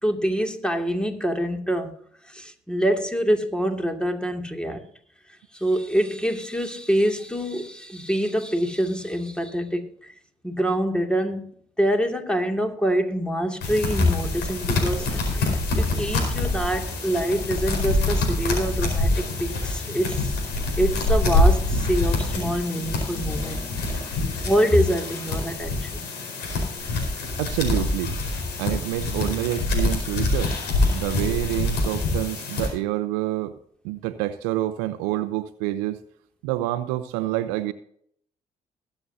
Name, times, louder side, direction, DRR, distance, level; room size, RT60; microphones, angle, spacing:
voice 1, 0.0-1.9 2.3-4.8 5.5-10.1 10.4-11.4 11.8-20.4 20.8-23.6 24.4-26.1, equal, 5° left, 2.5 m, -25 dB
sound 1, 13.6-32.7, left 2 dB, 75° left, 4.6 m, -25 dB
voice 2, 27.4-28.1 28.6-30.5 30.9-33.6 33.8-36.0 36.4-37.7, right 15 dB, 85° right, 0.7 m, -27 dB
21.5 x 7.8 x 2.8 m
hypercardioid pair, 55°, 17 cm